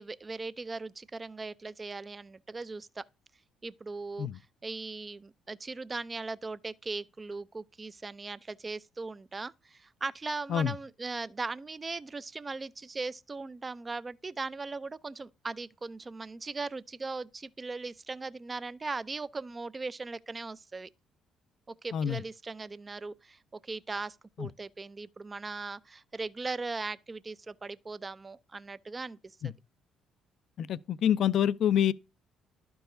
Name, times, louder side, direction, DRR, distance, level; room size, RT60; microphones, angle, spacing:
voice 1, 0.0-3.0 3.6-20.9 21.7-29.2, right 3 dB, 30° right, 0.5 m, -39 dB
voice 2, 30.6-31.9, left 9 dB, 65° left, 0.4 m, -27 dB
12.0 x 4.7 x 2.6 m
hypercardioid pair, 55°, 0 cm